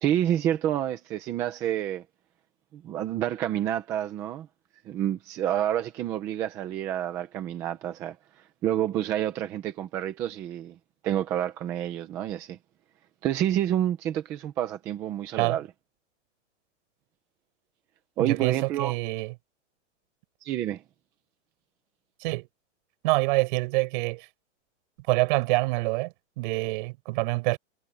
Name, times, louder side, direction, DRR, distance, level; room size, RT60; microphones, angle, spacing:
voice 1, 0.0-2.0 2.7-4.5 4.9-8.2 8.6-10.8 11.0-12.6 13.2-15.7 18.2-19.0 20.4-20.8, right 11 dB, 10° right, 0.4 m, -28 dB
voice 2, 18.2-19.3 22.2-22.5 23.0-24.3 25.1-27.6, right 24 dB, 40° right, 6.0 m, -26 dB
supercardioid pair, 165°, 37 cm